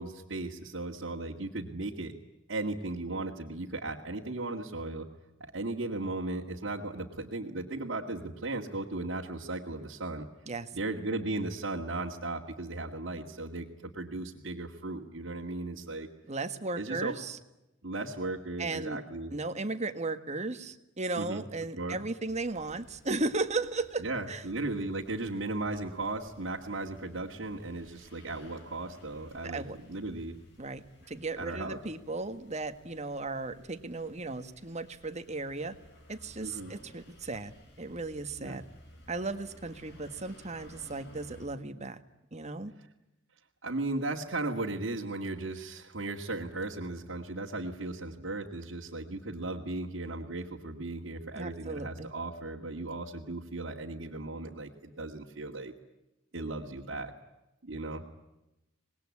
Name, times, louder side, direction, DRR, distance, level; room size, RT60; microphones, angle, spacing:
voice 1, 0.0-2.1 2.5-5.1 5.4-10.3 10.7-16.1 16.7-17.2 17.8-19.3 21.2-21.4 21.8-22.0 24.0-30.4 31.4-31.8 36.4-36.8 38.4-38.6 43.6-55.7 56.3-57.1 57.6-58.0, right 2 dB, 65° right, -4 dB, 2.3 m, -36 dB
voice 2, 16.3-17.4 18.6-19.0 19.3-24.4 29.4-29.8 30.6-35.7 36.1-37.5 37.8-38.6 39.1-42.0 42.3-42.7 51.3-52.1, right 3 dB, 35° right, 9 dB, 1.7 m, -35 dB
sound 1, 22.3-41.5, equal, 60° left, 7.3 m, -57 dB
25.5 x 20.5 x 9.8 m, 0.94 s
head